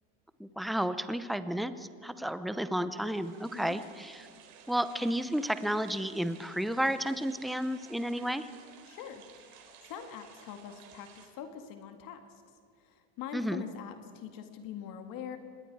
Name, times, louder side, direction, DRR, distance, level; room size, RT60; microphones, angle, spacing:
voice 1, 0.4-4.3 4.7-8.5 13.3-13.6, equal, ahead, 11 dB, 0.6 m, -32 dB
sound 1, 3.0-11.3, right 7 dB, 75° right, 3.4 m, -55 dB
voice 2, 8.9-9.2 9.5-12.3 12.8-15.4, left 9 dB, 50° left, 6 dB, 2.0 m, -43 dB
26.0 x 21.0 x 4.7 m, 2.2 s
supercardioid pair, 125°, 41 cm